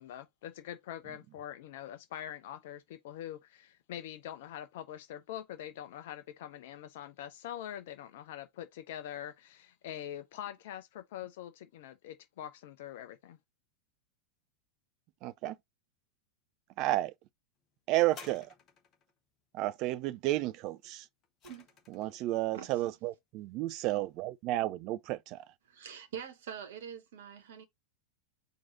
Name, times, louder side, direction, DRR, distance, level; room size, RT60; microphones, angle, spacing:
voice 1, 0.0-13.4, left 11 dB, 55° left, 0.5 m, -44 dB
voice 2, 15.2-15.6 16.8-17.1 17.9-18.5 19.5-21.1 21.9-25.4, right 16 dB, 40° right, 0.4 m, -32 dB
sound 1, 18.1-19.1 20.8-22.2 23.0-23.1, left 6 dB, 30° left, 1.2 m, -53 dB
voice 3, 25.7-27.6, right 8 dB, 55° right, 1.1 m, -44 dB
4.6 x 2.7 x 3.9 m
figure-of-eight pair, 90°, 0 cm